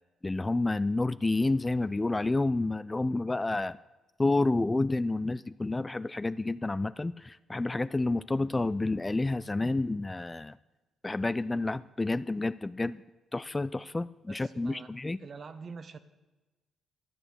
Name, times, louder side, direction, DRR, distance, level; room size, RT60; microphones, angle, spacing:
voice 1, 0.2-3.8 4.2-10.6 11.0-13.0 13.3-15.2, left 2 dB, 20° left, 0.3 m, -29 dB
voice 2, 14.3-14.9 15.2-16.0, right 5 dB, 45° right, 1.0 m, -45 dB
12.5 x 8.6 x 8.0 m
cardioid pair, 90°, 0 cm